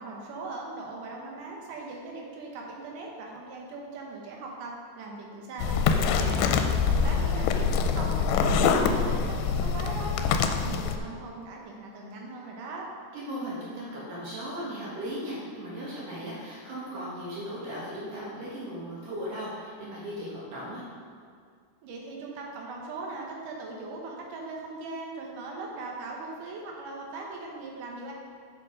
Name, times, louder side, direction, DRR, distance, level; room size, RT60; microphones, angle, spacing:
voice 1, 0.0-5.8 6.1-6.6 7.0-12.9 21.8-28.1, right 3 dB, 75° right, -1 dB, 2.0 m, -39 dB
sound 1, 5.6-11.0, left 6 dB, 90° left, 2.8 m, -25 dB
voice 2, 6.2-6.6 13.1-20.8, equal, 60° right, -7 dB, 2.7 m, -37 dB
8.2 x 6.4 x 5.0 m, 2.2 s
omnidirectional pair, 4.9 m